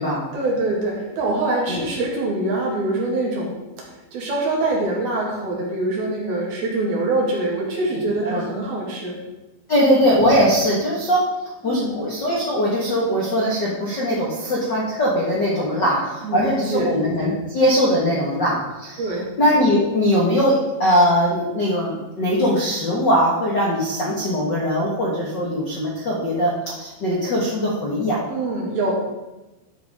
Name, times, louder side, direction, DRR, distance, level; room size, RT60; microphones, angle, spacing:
voice 1, 0.3-3.5 4.1-9.2 11.6-11.9 15.8-15.9 16.2-17.0 19.0-19.3 28.3-28.9, right 2 dB, 60° right, -3 dB, 3.9 m, -24 dB
voice 2, 9.7-11.2 11.6-20.5 20.8-28.2, equal, 85° left, -6 dB, 0.9 m, -20 dB
12.0 x 8.2 x 3.7 m, 1.0 s
omnidirectional pair, 5.2 m